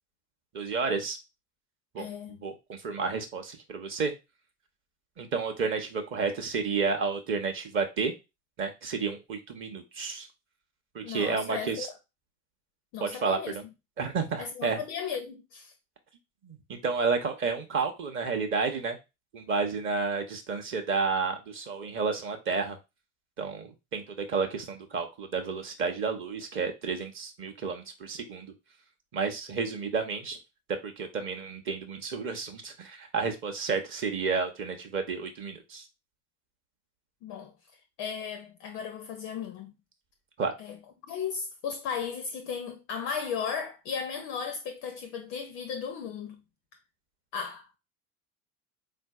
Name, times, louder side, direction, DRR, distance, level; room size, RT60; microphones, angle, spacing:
voice 1, 0.5-1.2 1.9-2.1 2.4-4.1 5.2-8.1 8.6-10.3 10.9-11.9 13.0-13.6 14.0-14.8 16.4-16.6 16.8-19.0 19.3-22.8 23.4-28.5 29.1-30.4 30.8-35.8 40.4-40.5, right 4 dB, 25° right, 0.7 m, -31 dB
voice 2, 2.0-2.4 11.0-12.0 12.9-13.6 14.4-15.7 37.2-37.5 38.0-39.7 40.6-40.8 41.1-46.4 47.3-47.7, left 6 dB, 30° left, 0.4 m, -36 dB
4.0 x 2.5 x 2.3 m
figure-of-eight pair, 80°, 47 cm